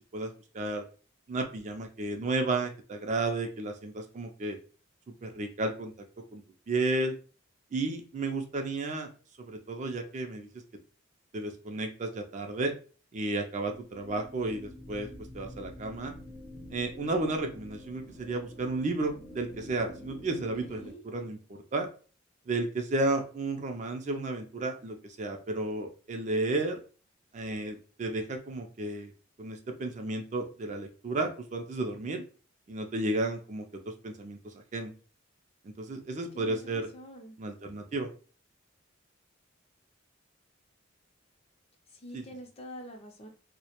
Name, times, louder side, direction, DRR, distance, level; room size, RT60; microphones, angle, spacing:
voice 1, 0.1-0.8 1.3-4.6 5.2-5.9 6.3-7.1 7.7-9.1 9.4-10.5 11.3-12.7 13.1-15.1 15.3-16.1 16.7-21.9 22.5-26.8 27.3-29.1 29.4-32.2 32.7-34.9 35.6-36.9 37.4-38.1 42.1-42.2, right 2 dB, 35° right, 4 dB, 0.3 m, -33 dB
sound 1, 13.6-20.9, left 1 dB, 75° left, 0.8 m, -47 dB
voice 2, 20.6-21.0 36.3-37.4 41.9-43.3, equal, 30° left, 3 dB, 0.4 m, -46 dB
2.2 x 2.0 x 2.8 m, 0.38 s
head